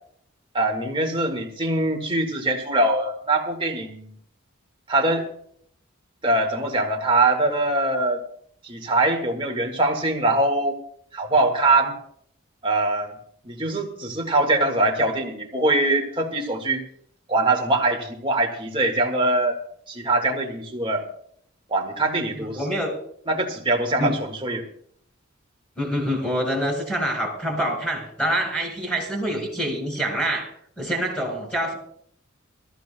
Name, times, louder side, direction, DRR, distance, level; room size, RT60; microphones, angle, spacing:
voice 1, 0.5-4.1 4.9-5.2 6.2-8.2 8.6-10.8 11.1-12.0 12.6-13.1 13.5-16.8 17.3-19.6 19.9-21.1 21.7-22.6 23.3-24.7, right 2 dB, 25° right, 1.7 m, -23 dB
voice 2, 22.3-23.0 24.0-24.2 25.8-31.8, equal, 10° left, 5.1 m, -26 dB
23.0 x 14.5 x 2.2 m
head